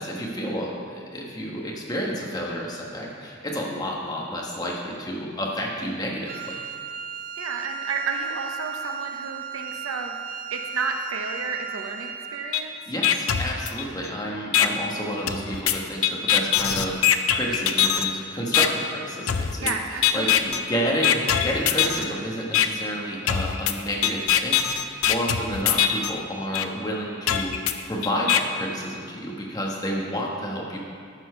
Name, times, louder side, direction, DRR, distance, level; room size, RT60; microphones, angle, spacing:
voice 1, 0.0-6.6 12.9-19.7 20.1-27.5 27.8-30.8, equal, 20° left, -2 dB, 1.2 m, -30 dB
Wind instrument woodwind instrument, 6.3-12.6, right 7 dB, 45° right, 0.4 m, -35 dB
voice 2, 7.4-10.2 10.5-12.8 19.6-20.6, right 4 dB, 85° right, 4 dB, 0.8 m, -31 dB
sound 1, 12.5-12.6 13.0-14.1 14.5-14.7 15.3-18.1 18.5-18.7 19.3-19.7 20.0-20.6 21.0-22.0 22.5-22.7 23.3-26.1 26.5-26.6 27.3-28.4, left 10 dB, 85° left, 0.5 m, -22 dB
12.5 x 4.4 x 5.6 m, 2.3 s
head